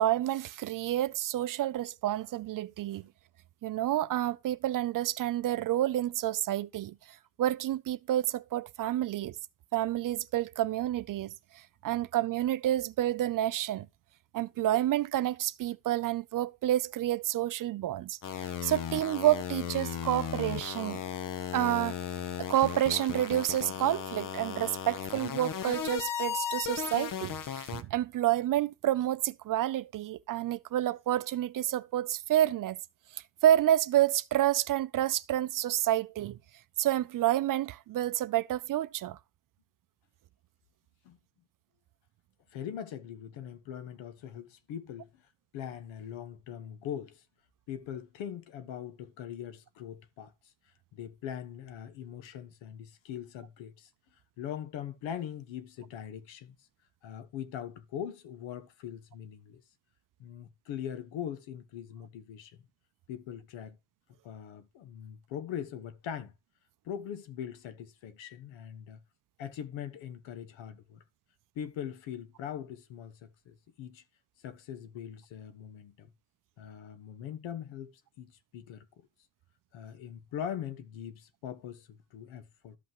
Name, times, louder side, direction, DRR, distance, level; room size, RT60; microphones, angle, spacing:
voice 1, 0.0-3.0 3.6-6.9 7.4-9.4 9.7-13.9 14.3-21.0 21.5-22.0 22.4-32.8 33.1-36.4 36.8-39.2, right 13 dB, 45° right, 0.5 m, -29 dB
sound 1, 18.2-27.8, left 9 dB, 45° left, 0.9 m, -36 dB
voice 2, 42.5-45.2 45.5-47.2 47.7-50.5 50.9-53.9 54.4-56.5 57.0-59.6 60.2-62.6 63.1-63.8 64.2-66.3 66.8-69.0 69.4-71.0 71.5-74.0 74.4-76.1 76.6-78.9 79.7-82.8, left 9 dB, 80° left, 1.3 m, -41 dB
13.5 x 5.7 x 3.0 m
cardioid pair, 115°, 45 cm